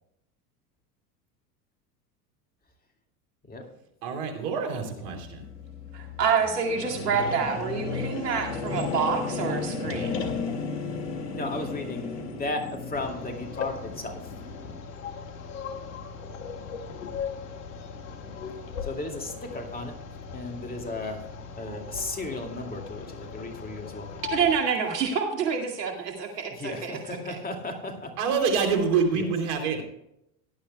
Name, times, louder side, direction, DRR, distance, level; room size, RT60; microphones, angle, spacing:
voice 1, 4.0-5.5 28.2-29.8, right 5 dB, 65° right, 3 dB, 3.3 m, -26 dB
sound 1, 5.0-14.7, left 4 dB, 80° left, 2.2 m, -34 dB
voice 2, 5.9-10.2 24.3-27.2, right 6 dB, 85° right, 1 dB, 2.3 m, -27 dB
voice 3, 11.3-14.2 18.8-19.9 20.3-21.2 21.6-24.1 26.6-28.1 29.1-29.3, left 2 dB, 20° left, 3 dB, 2.4 m, -35 dB
sound 2, 12.9-24.6, left 6 dB, 60° left, 1.8 m, -38 dB
17.5 x 11.5 x 2.3 m, 0.80 s
hypercardioid pair, 90°, 47 cm